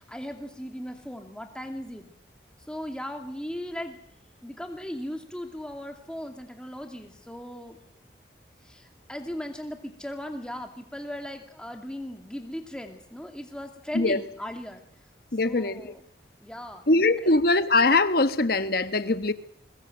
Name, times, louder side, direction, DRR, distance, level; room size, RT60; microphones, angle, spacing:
voice 1, 0.0-2.1 2.7-4.0 4.4-7.8 8.6-14.8 15.4-16.0 16.4-16.8 17.2-17.4, equal, 5° left, 4 dB, 2.5 m, -37 dB
voice 2, 15.3-15.8 16.9-19.3, left 2 dB, 55° left, 11 dB, 1.2 m, -22 dB
22.5 x 20.5 x 7.8 m, 0.68 s
head